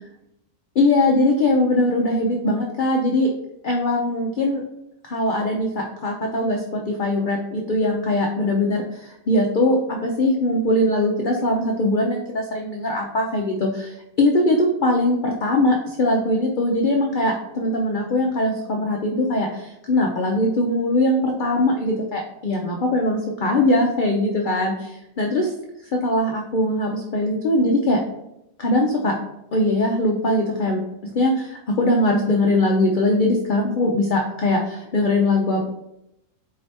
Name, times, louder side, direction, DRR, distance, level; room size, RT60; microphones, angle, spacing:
voice 1, 0.8-3.3 3.6-4.6 5.0-24.7 25.2-25.5 25.9-28.0 28.6-29.1 29.5-30.8 31.1-35.7, left 1 dB, 85° left, 0 dB, 0.4 m, -21 dB
4.6 x 2.7 x 3.3 m, 0.81 s
omnidirectional pair, 1.5 m